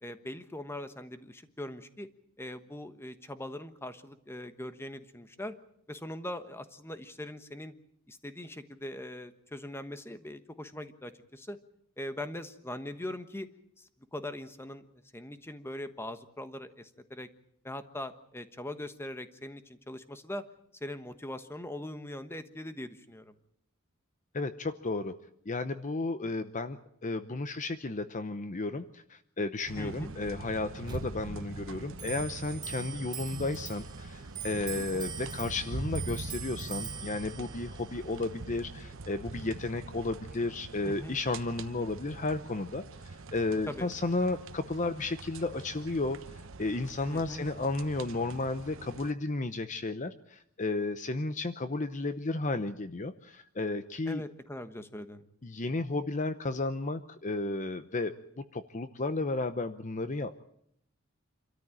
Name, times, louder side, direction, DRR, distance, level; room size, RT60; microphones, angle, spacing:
voice 1, 0.0-2.1 2.4-5.5 5.9-7.7 8.1-11.6 12.0-13.5 13.8-14.9 15.1-17.3 17.6-20.4 20.8-23.3 29.8-30.1 34.8-35.1 40.8-41.2 43.7-43.9 47.1-47.5 54.0-55.2, left 1 dB, 10° left, 10 dB, 1.2 m, -41 dB
voice 2, 24.3-25.1 25.5-46.2 46.6-54.2 55.4-60.4, left 2 dB, 35° left, 10 dB, 0.8 m, -33 dB
sound 1, 29.7-49.1, right 3 dB, 65° right, 1.0 m, -43 dB
Clock, 30.8-40.7, right 7 dB, 20° right, 1.0 m, -44 dB
27.0 x 13.5 x 9.0 m, 0.74 s
head